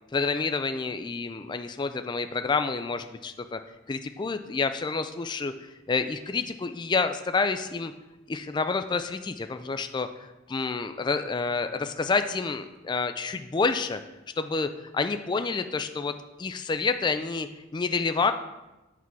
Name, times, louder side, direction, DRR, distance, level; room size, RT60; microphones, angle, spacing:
voice 1, 0.1-3.6 3.9-5.5 5.9-7.9 8.3-14.0 14.4-16.1 16.4-18.3, left 4 dB, 20° left, 8 dB, 0.3 m, -28 dB
8.1 x 4.7 x 5.8 m, 1.0 s
head